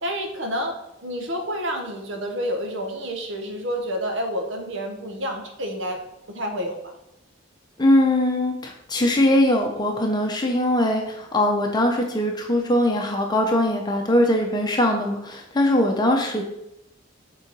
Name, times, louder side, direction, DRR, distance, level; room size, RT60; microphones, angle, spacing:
voice 1, 0.0-0.7 1.0-6.0 6.3-6.8, equal, 80° right, 3 dB, 1.2 m, -29 dB
voice 2, 7.8-16.4, left 1 dB, 20° left, 2 dB, 0.7 m, -21 dB
7.4 x 3.8 x 4.6 m, 0.84 s
head